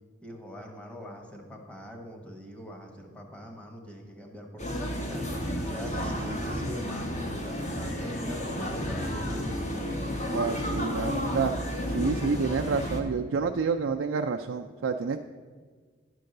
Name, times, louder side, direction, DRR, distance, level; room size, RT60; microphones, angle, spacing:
voice 1, 0.2-5.2 5.6-9.5, equal, 5° left, 2 dB, 1.1 m, -42 dB
sound 1, 4.6-13.0, equal, 35° left, 1.1 m, -32 dB
voice 2, 6.0-6.3 10.3-11.5 11.9-15.3, right 5 dB, 80° right, 3 dB, 0.4 m, -29 dB
10.5 x 4.6 x 6.5 m, 1.6 s
head